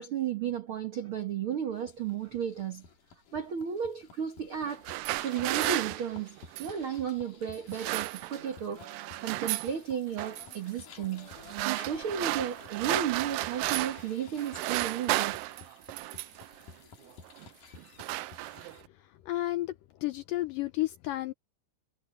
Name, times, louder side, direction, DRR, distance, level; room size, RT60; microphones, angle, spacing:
voice 1, 0.0-2.9 3.3-4.9 5.2-11.3 11.6-15.4, right 8 dB, 70° right, 1.2 m, -34 dB
sound 1, 1.7-18.8, left 5 dB, 55° left, 3.7 m, -53 dB
sound 2, 4.6-6.8 7.5-8.6 8.8-9.7 10.2-10.6 11.3-14.1 14.4-16.5 17.2-17.5 17.8-18.9, right 19 dB, 85° right, 2.0 m, -33 dB
voice 2, 19.3-19.8 20.0-21.3, left 16 dB, 75° left, 2.0 m, -31 dB
omnidirectional pair, 4.6 m